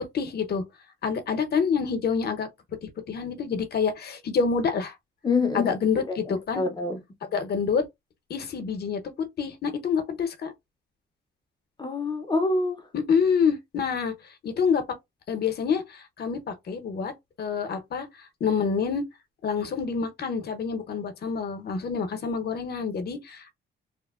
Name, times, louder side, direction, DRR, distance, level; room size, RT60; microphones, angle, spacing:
voice 1, 0.1-0.6 1.0-2.5 2.8-4.9 5.5-6.7 7.2-7.9 8.3-9.0 9.4-10.5 12.9-14.1 14.4-14.8 15.3-17.1 17.4-18.1 18.4-19.0 19.4-23.5, left 6 dB, 55° left, 0.8 m, -27 dB
voice 2, 5.2-5.7 6.1-7.0 11.8-12.8, left 3 dB, 25° left, 0.6 m, -26 dB
2.9 x 2.1 x 2.3 m
cardioid pair, 90°, 20 cm